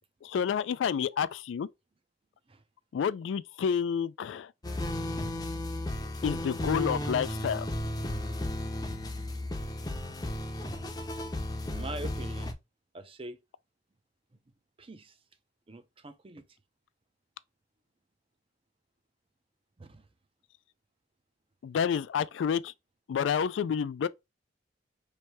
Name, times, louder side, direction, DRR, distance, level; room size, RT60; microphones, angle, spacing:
voice 1, 0.2-1.7 2.9-4.5 6.2-7.7 21.6-22.7 23.1-24.1, left 7 dB, 80° left, 0.3 m, -29 dB
sound 1, 4.6-12.5, left 1 dB, 20° left, 0.6 m, -34 dB
voice 2, 11.7-12.5 12.9-13.4 14.8-15.2 15.7-16.4 19.8-20.1, right 2 dB, 30° right, 0.6 m, -43 dB
3.2 x 2.7 x 4.5 m
head